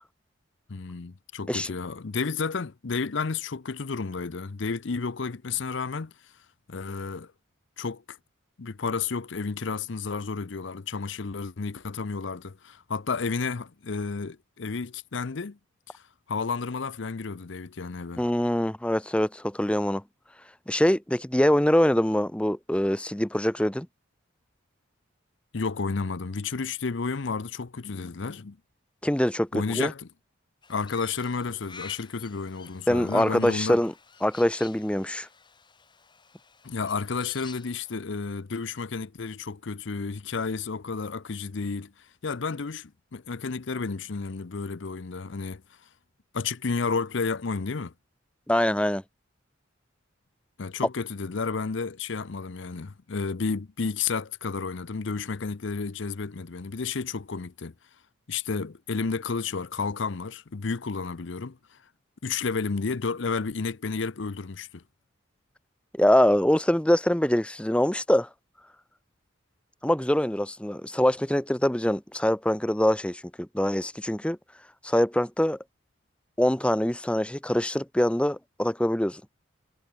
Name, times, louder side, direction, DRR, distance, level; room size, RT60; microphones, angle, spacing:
voice 1, 0.7-6.1 6.7-7.3 7.8-8.2 8.6-15.6 15.9-16.0 16.3-18.2 25.5-28.6 29.5-30.1 30.7-33.8 36.6-45.6 46.3-47.9 50.6-57.7 58.3-61.8 62.2-64.8, left 4 dB, 65° left, 0.6 m, -31 dB
voice 2, 18.2-20.0 20.7-23.9 29.0-29.9 32.9-33.9 34.2-35.3 48.5-49.0 66.0-68.3 69.8-74.4 74.8-75.6 76.4-79.2, equal, 5° left, 0.6 m, -24 dB
Crow, 30.6-38.0, left 5 dB, 20° left, 3.5 m, -50 dB
head